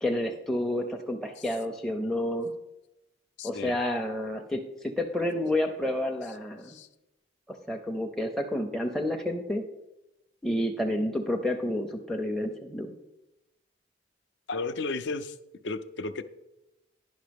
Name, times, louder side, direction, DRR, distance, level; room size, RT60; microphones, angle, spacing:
voice 1, 0.0-2.5 3.4-6.8 7.7-9.6 10.4-12.9, left 1 dB, ahead, 2 dB, 0.5 m, -30 dB
voice 2, 3.4-3.8 6.6-6.9 14.5-15.4 15.6-16.2, left 3 dB, 65° left, 12 dB, 0.5 m, -33 dB
10.5 x 5.6 x 5.1 m, 0.94 s
head